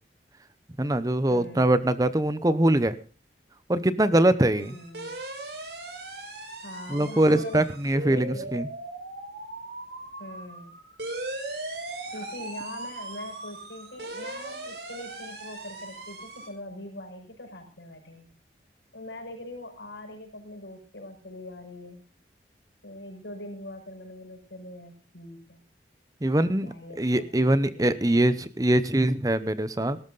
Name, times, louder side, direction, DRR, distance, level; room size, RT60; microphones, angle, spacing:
voice 1, 0.8-3.0 3.7-4.7 6.9-8.7 26.2-30.0, right 1 dB, 20° right, 14 dB, 0.8 m, -23 dB
voice 2, 1.3-1.8 4.6-5.1 6.6-7.6 8.0-8.5 10.2-10.7 12.1-18.3 18.9-22.0 22.8-25.6 26.6-28.4, left 1 dB, 90° left, 3 dB, 6.5 m, -42 dB
sound 1, 4.6-16.5, right 2 dB, 75° right, 5.4 m, -38 dB
18.5 x 13.0 x 4.0 m, 0.36 s
head